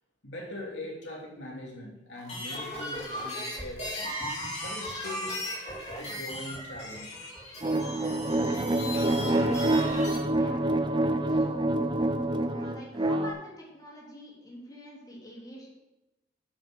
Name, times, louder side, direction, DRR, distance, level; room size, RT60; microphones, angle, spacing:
voice 1, 0.2-4.2 4.6-7.2 7.6-7.7 8.4-8.5, left 1 dB, 90° left, -2 dB, 2.8 m, -42 dB
sound 1, 2.2-10.2, left 1 dB, 35° left, 3.0 m, -37 dB
sound 2, 7.6-13.3, right 1 dB, 25° right, 0.6 m, -26 dB
voice 2, 11.3-11.9 12.4-15.7, equal, 20° left, -4 dB, 3.2 m, -45 dB
8.5 x 7.6 x 6.1 m, 0.98 s
head